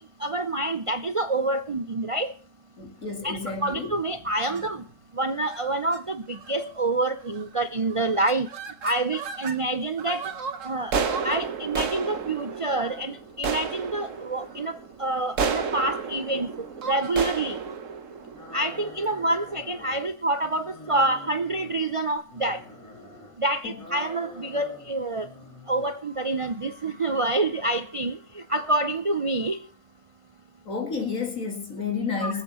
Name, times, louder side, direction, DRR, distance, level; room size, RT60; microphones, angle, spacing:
voice 1, 0.2-2.3 3.2-4.8 5.2-8.5 8.8-10.2 10.6-10.9 11.2-17.6 18.5-22.6 23.4-25.3 25.7-28.2 28.5-29.6 32.2-32.4, right 2 dB, 45° right, 0.4 m, -27 dB
voice 2, 2.8-4.0 4.5-4.6 23.6-23.7 30.7-32.4, left 5 dB, 80° left, 2.8 m, -31 dB
sound 1, 3.5-3.9 4.4-4.7 5.4-5.6 5.9-6.0 6.3-6.7 7.3-7.6 7.9-9.6 10.0-19.2, right 5 dB, 70° right, 1.5 m, -32 dB
sound 2, 18.3-20.1 20.4-21.9 22.3-23.3 23.7-24.9 25.2-25.9, equal, 10° left, 6.3 m, -45 dB
23.5 x 8.2 x 4.3 m
omnidirectional pair, 1.4 m